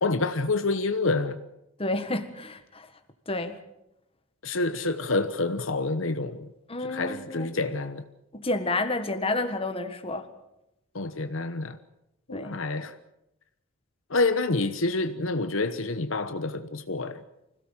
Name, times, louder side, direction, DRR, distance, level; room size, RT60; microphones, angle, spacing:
voice 1, 0.0-1.4 4.4-6.5 6.8-8.1 10.9-11.8 12.3-13.0 14.1-17.2, left 3 dB, 65° left, 1.0 m, -28 dB
voice 2, 1.8-2.9 3.3-3.6 6.7-7.5 8.4-10.3 12.3-12.6, left 2 dB, 25° left, 1.7 m, -30 dB
25.0 x 17.0 x 7.4 m
head